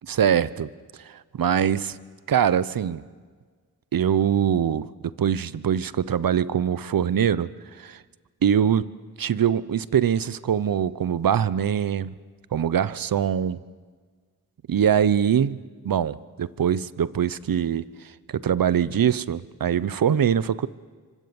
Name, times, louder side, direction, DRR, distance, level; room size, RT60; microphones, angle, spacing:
voice 1, 0.1-0.7 1.0-2.0 2.3-3.0 3.9-4.9 5.2-7.5 7.8-8.0 8.4-8.9 9.2-12.1 12.5-13.6 14.7-15.6 15.8-17.8 18.3-20.7, right 8 dB, 65° right, 17 dB, 0.9 m, -23 dB
28.0 x 25.0 x 7.1 m, 1.5 s
cardioid pair, 45°, 37 cm